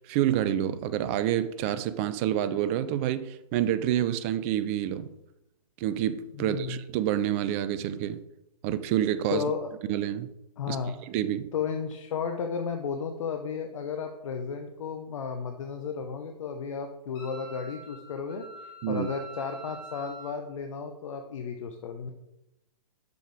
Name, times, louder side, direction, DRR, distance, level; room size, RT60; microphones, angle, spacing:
voice 1, 0.1-5.1 5.8-8.2 8.6-9.4 9.9-10.3 10.7-10.8 11.1-11.5 18.8-19.1, right 11 dB, 20° right, 0.4 m, -28 dB
voice 2, 6.3-6.8 9.3-9.7 10.6-11.0 11.5-22.1, left 6 dB, 50° left, 0.8 m, -33 dB
Wind instrument woodwind instrument, 17.1-20.4, right 2 dB, 20° left, 2.0 m, -45 dB
6.9 x 6.4 x 4.8 m
figure-of-eight pair, 130°, 20 cm